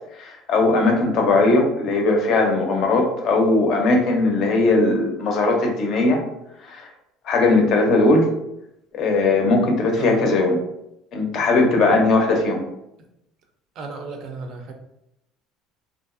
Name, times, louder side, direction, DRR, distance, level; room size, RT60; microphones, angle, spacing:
voice 1, 0.1-6.2 6.6-6.9 7.2-8.3 8.9-10.6 11.1-12.6, left 2 dB, 45° left, 3 dB, 0.5 m, -19 dB
voice 2, 13.8-14.7, right 4 dB, 50° right, 4 dB, 0.4 m, -34 dB
2.8 x 2.4 x 2.5 m, 0.84 s
cardioid pair, 150°, 0 cm